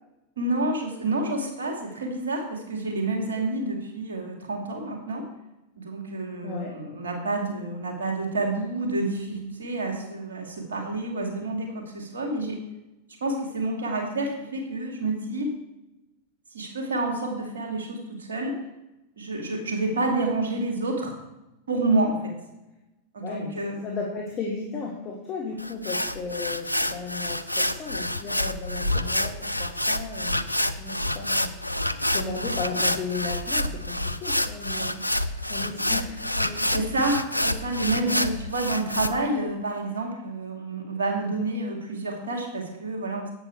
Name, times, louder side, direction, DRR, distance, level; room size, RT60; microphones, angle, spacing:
voice 1, 0.4-5.2 5.8-12.6 13.2-15.5 16.5-18.6 19.2-21.1 21.7-22.3 23.1-23.8 36.6-43.3, right 2 dB, 70° right, 2 dB, 2.5 m, -29 dB
voice 2, 6.4-6.7 23.2-23.5 23.8-30.4 30.8-31.5 32.1-35.0 35.5-36.9 38.0-38.3, left 4 dB, 30° left, -1 dB, 1.9 m, -35 dB
sound 1, 25.6-39.1, left 1 dB, 85° left, 0.5 m, -28 dB
11.0 x 8.8 x 4.7 m, 0.96 s
figure-of-eight pair, 90°, 0 cm